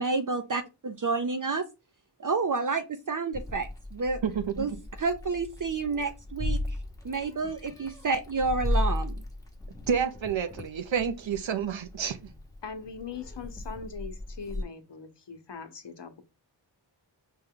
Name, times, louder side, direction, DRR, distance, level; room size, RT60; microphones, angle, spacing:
voice 1, 0.0-1.7 2.2-4.2 4.6-4.7 5.0-6.6 7.0-9.2, right 4 dB, 45° right, 0.5 m, -29 dB
Meow, 3.3-14.6, left 1 dB, 10° left, 1.0 m, -36 dB
voice 2, 4.2-4.5 9.9-12.2, right 7 dB, 85° right, 0.6 m, -29 dB
voice 3, 12.6-16.2, left 5 dB, 70° left, 0.8 m, -41 dB
5.3 x 2.2 x 3.6 m
wide cardioid pair, 55°, 45 cm